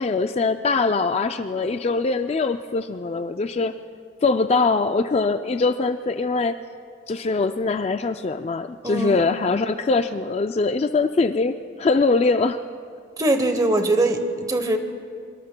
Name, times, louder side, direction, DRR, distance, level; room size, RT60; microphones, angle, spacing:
voice 1, 0.0-3.8 4.2-6.6 7.1-12.6, left 3 dB, 30° left, 9 dB, 0.3 m, -22 dB
voice 2, 8.8-9.2 13.2-14.8, right 2 dB, 20° right, 7 dB, 0.9 m, -22 dB
24.5 x 23.0 x 2.2 m, 2.2 s
head